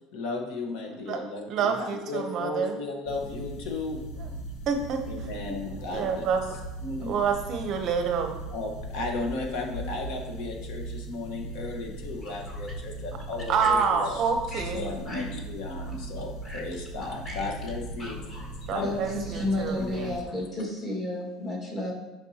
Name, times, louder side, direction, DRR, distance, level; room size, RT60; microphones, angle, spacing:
voice 1, 0.1-4.0 5.1-6.3 6.8-7.2 8.5-14.2 14.7-18.2 18.7-18.9 19.8-20.0, left 3 dB, 60° left, 2 dB, 1.2 m, -35 dB
voice 2, 1.1-2.8 4.2-4.3 4.7-5.6 5.9-6.6 7.0-8.4 13.5-14.9 18.7-20.1, right 6 dB, 35° right, 5 dB, 0.7 m, -28 dB
sound 1, 3.1-20.2, right 2 dB, 85° left, 1.4 m, -39 dB
voice 3, 12.2-12.6 13.6-13.7 14.5-14.6 15.1-15.3 16.4-16.6 17.3-17.4 18.0-18.5 18.8-21.9, left 1 dB, 20° left, -3 dB, 1.7 m, -32 dB
10.5 x 5.3 x 2.8 m, 1.1 s
cardioid pair, 175°, 0 cm